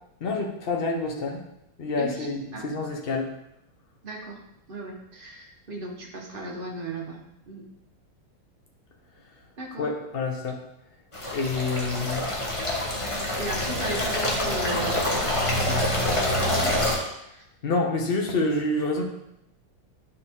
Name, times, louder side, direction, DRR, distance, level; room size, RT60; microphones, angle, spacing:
voice 1, 0.2-1.4 1.8-3.3 9.8-10.6 11.3-12.3 17.6-19.0, left 3 dB, 70° left, 1 dB, 0.5 m, -27 dB
voice 2, 2.0-2.7 4.0-4.4 4.7-7.2 7.5-7.6 9.6-9.9 11.8-12.2 13.4-17.4, right 1 dB, 35° right, -1 dB, 1.0 m, -37 dB
sound 1, 11.1-17.0, left 1 dB, 20° left, 0.8 m, -26 dB
10.0 x 4.7 x 3.7 m, 0.82 s
omnidirectional pair, 2.4 m